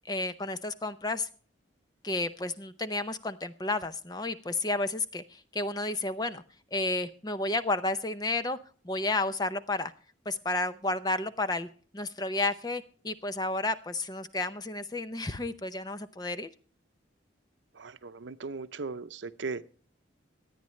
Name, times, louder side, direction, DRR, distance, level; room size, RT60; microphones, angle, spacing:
voice 1, 0.1-1.3 2.0-6.4 6.7-8.6 8.8-9.9 10.3-11.7 11.9-16.5, left 2 dB, 20° left, 11 dB, 0.6 m, -31 dB
voice 2, 17.8-19.6, right 4 dB, 75° right, 12 dB, 0.6 m, -38 dB
24.0 x 9.4 x 3.2 m, 0.42 s
head